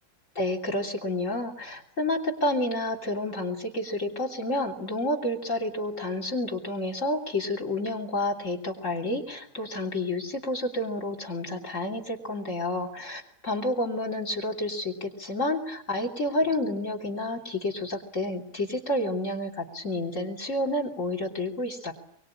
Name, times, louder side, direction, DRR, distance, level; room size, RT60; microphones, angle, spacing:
voice 1, 0.4-21.9, left 1 dB, 35° left, 6 dB, 3.7 m, -30 dB
24.0 x 24.0 x 10.0 m, 0.68 s
omnidirectional pair, 2.2 m